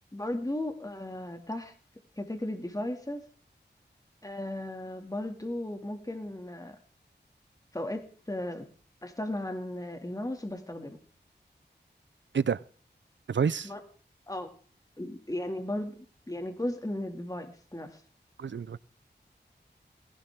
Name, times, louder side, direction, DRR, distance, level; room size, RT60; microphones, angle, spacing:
voice 1, 0.1-1.7 2.2-3.2 4.2-6.8 7.7-8.7 9.0-11.0 13.6-13.8 14.3-14.5 15.0-15.9 16.3-18.0, left 1 dB, 20° left, 5 dB, 2.4 m, -35 dB
voice 2, 13.3-13.7 18.4-18.8, right 6 dB, 85° right, 19 dB, 0.6 m, -28 dB
19.0 x 16.5 x 3.7 m, 0.43 s
wide cardioid pair, 65°, 19 cm